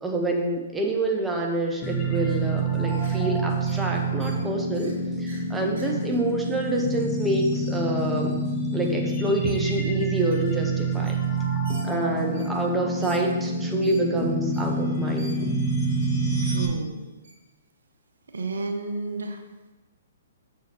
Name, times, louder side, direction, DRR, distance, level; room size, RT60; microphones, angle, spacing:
voice 1, 0.0-4.9 5.2-8.4 8.7-11.2 11.8-15.4, right 2 dB, 10° right, 0 dB, 1.0 m, -27 dB
sound 1, 1.8-16.7, right 2 dB, 30° left, 1.2 m, -27 dB
sound 2, 2.7-3.2 3.6-3.8 4.2-4.4 4.7-5.0 5.3-5.4 5.8-6.3 6.8-6.9 7.7-7.8 8.1-8.2 9.0-9.8 10.3-10.4 10.7-10.8 11.0-11.2 11.6-11.9 12.3-12.5 13.0-13.2 13.8-14.0 14.5-14.7 15.2-15.4 16.0-16.1 16.6-16.7 17.2-17.4, right 2 dB, 50° right, 2.2 m, -48 dB
voice 2, 5.7-6.1 16.4-17.0 18.3-19.4, right 3 dB, 75° right, 5 dB, 0.8 m, -32 dB
7.0 x 6.6 x 3.1 m, 1.1 s
figure-of-eight pair, 125°, 0 cm